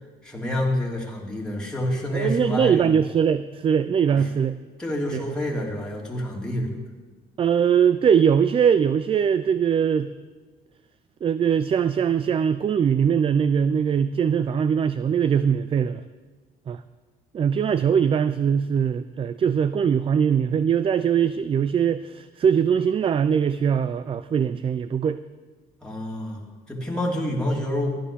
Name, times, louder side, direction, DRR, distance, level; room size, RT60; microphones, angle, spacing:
voice 1, 0.2-2.9 4.1-4.2 4.8-6.8 25.8-28.0, left 1 dB, 5° left, -3 dB, 2.9 m, -28 dB
voice 2, 2.1-4.6 5.1-5.2 7.4-10.1 11.2-16.0 16.7-16.8 17.3-25.2, right 7 dB, 30° right, 14 dB, 0.4 m, -21 dB
14.0 x 10.0 x 6.9 m, 1.4 s
cardioid pair, 110°, 17 cm